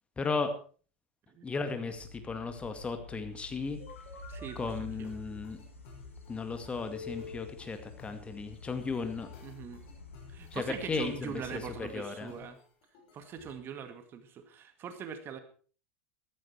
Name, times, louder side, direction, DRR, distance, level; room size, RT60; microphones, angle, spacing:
voice 1, 0.2-0.5 1.4-3.8 4.6-5.6 6.3-9.3 10.5-12.3, left 4 dB, 15° left, 8 dB, 2.1 m, -35 dB
sound 1, 1.9-11.9, left 3 dB, 90° left, 2.6 m, -49 dB
sound 2, 3.8-4.6 5.0-13.5, left 5 dB, 50° left, 6.6 m, -51 dB
voice 2, 4.3-5.1 9.4-9.8 10.3-12.6 13.1-15.4, right 7 dB, 35° right, 9 dB, 2.0 m, -42 dB
15.5 x 13.5 x 4.7 m, 0.40 s
figure-of-eight pair, 85°, 7 cm